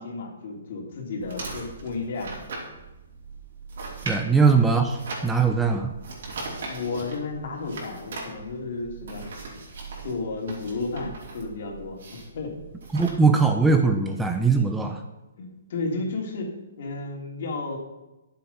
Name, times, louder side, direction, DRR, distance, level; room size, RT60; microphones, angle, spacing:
voice 1, 0.0-2.3 4.3-4.4 6.7-9.3 10.0-12.6 14.8-14.9 15.4-16.5 16.8-17.8, left 3 dB, 55° left, 1 dB, 3.0 m, -33 dB
sound 1, 1.2-13.1, right 3 dB, 60° right, 4.3 m, -39 dB
voice 2, 4.1-5.0 5.2-5.9 12.9-15.0, right 4 dB, 5° right, 5 dB, 0.6 m, -20 dB
10.5 x 7.6 x 5.9 m, 1.0 s
hypercardioid pair, 155°, 0 cm